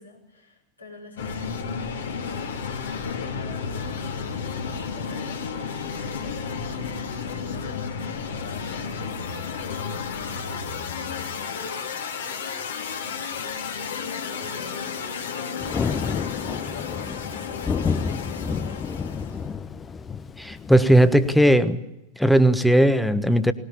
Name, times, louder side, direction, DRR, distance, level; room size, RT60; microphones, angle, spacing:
voice 1, 0.0-2.6 3.0-9.3 9.6-11.9 12.7-14.9 15.2-19.7, left 3 dB, 85° left, -1 dB, 5.9 m, -45 dB
sound 1, 1.2-19.5, left 6 dB, 65° left, 2.5 m, -32 dB
Thunder, 15.6-21.4, left 5 dB, 20° left, 0.8 m, -30 dB
voice 2, 20.4-21.8 22.2-23.5, right 1 dB, ahead, 11 dB, 1.3 m, -17 dB
19.5 x 19.5 x 8.7 m, 0.90 s
figure-of-eight pair, 90°, 0 cm